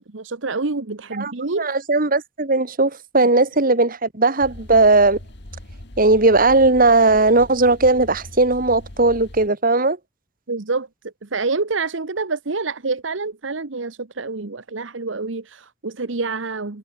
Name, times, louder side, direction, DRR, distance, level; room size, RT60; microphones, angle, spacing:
voice 1, 0.0-1.7 10.5-16.8, right 3 dB, 80° right, 1.2 m, -27 dB
voice 2, 1.6-5.2 6.0-10.0, right 2 dB, 45° right, 2.2 m, -17 dB
sound 1, 4.4-9.5, left 1 dB, 60° left, 2.6 m, -40 dB
head